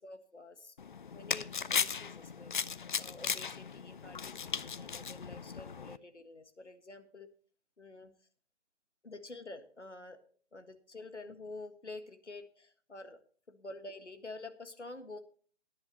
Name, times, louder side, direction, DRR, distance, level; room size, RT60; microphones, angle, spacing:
voice 1, 0.0-0.8 1.1-2.5 3.0-7.3 7.8-8.1 9.0-10.2 10.5-13.2 13.5-15.2, left 2 dB, 85° left, 9 dB, 1.8 m, -48 dB
sound 1, 0.8-6.0, left 6 dB, 45° left, 0.5 m, -37 dB
18.5 x 10.5 x 3.0 m, 0.43 s
figure-of-eight pair, 145°, 34 cm